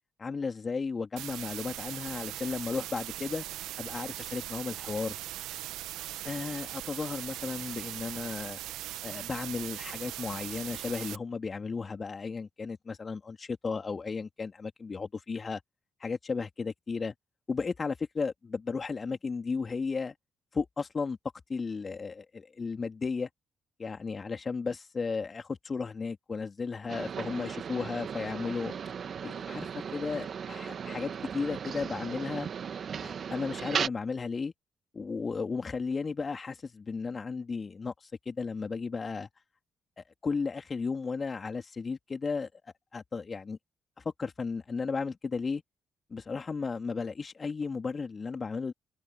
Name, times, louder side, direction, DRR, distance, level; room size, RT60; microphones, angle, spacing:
voice 1, 0.2-3.5 3.8-5.2 6.2-8.6 9.0-15.6 16.0-17.2 17.5-20.1 20.5-21.2 21.5-23.3 23.8-28.7 29.2-32.5 33.0-34.5 34.9-39.3 40.0-42.5 42.9-43.6 44.0-45.6 46.1-48.7, left 4 dB, 40° left, 3.6 m, -34 dB
sound 1, 1.2-11.2, right 15 dB, 70° right, 1.5 m, -40 dB
sound 2, 26.9-33.9, right 7 dB, 55° right, 2.0 m, -36 dB
hypercardioid pair, 40°, 0 cm